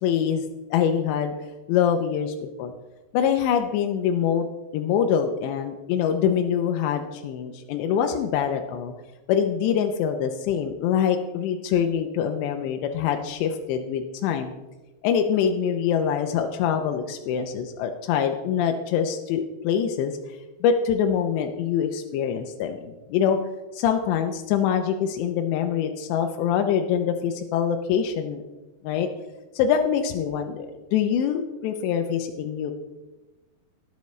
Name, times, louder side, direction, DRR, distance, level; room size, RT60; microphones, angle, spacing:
voice 1, 0.0-1.3 1.7-2.7 3.1-4.5 4.7-8.9 9.3-14.5 15.0-20.2 20.6-23.4 23.7-28.4 28.8-29.1 29.6-32.7, left 8 dB, 90° left, 5 dB, 3.0 m, -24 dB
18.5 x 8.2 x 3.2 m, 1.1 s
omnidirectional pair, 4.9 m